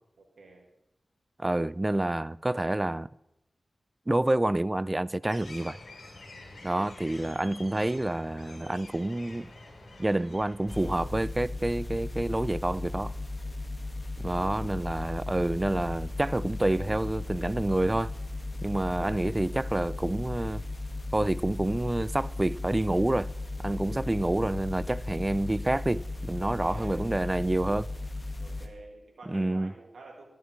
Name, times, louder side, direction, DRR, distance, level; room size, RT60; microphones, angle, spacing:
voice 1, 0.2-0.6 6.5-6.7 14.2-14.8 23.9-24.3 26.4-27.0 28.4-30.2, right 3 dB, 90° right, 2.1 m, -50 dB
voice 2, 1.4-3.1 4.1-5.8 6.6-9.5 10.0-13.1 14.2-18.1 18.6-20.6 21.1-23.3 23.6-27.9 29.3-29.7, right 1 dB, 25° right, 0.3 m, -28 dB
sound 1, 5.3-11.0, left 2 dB, 85° left, 2.9 m, -48 dB
sound 2, 10.7-28.7, left 2 dB, 40° left, 1.4 m, -36 dB
13.5 x 12.5 x 3.1 m
cardioid pair, 45°, 0 cm